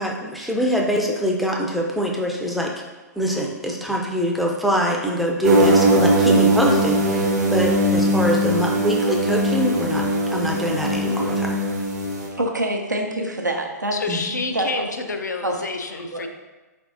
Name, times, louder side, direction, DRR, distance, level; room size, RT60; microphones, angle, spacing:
voice 1, 0.0-2.7 3.2-10.0 10.3-11.6 14.1-14.3, equal, ahead, -1 dB, 0.4 m, -24 dB
sound 1, 5.4-12.3, right 1 dB, 70° right, 0.9 m, -20 dB
voice 2, 12.4-14.0 14.5-14.9 15.4-15.6 16.1-16.3, right 1 dB, 90° right, 1 dB, 0.6 m, -25 dB
voice 3, 13.9-16.3, left 3 dB, 75° left, 5 dB, 0.5 m, -28 dB
4.4 x 3.4 x 2.6 m, 1.2 s
figure-of-eight pair, 120°, 10 cm